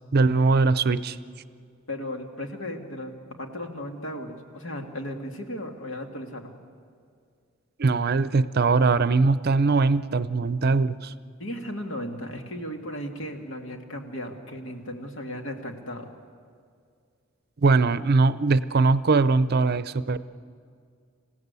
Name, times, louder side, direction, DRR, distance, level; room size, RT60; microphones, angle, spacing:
voice 1, 0.1-1.2 7.8-11.1 17.6-20.2, right 3 dB, 50° right, 15 dB, 0.6 m, -21 dB
voice 2, 1.9-3.1 3.4-6.5 11.4-16.1, left 1 dB, 75° left, 3 dB, 2.2 m, -35 dB
27.0 x 16.5 x 8.3 m, 2.2 s
head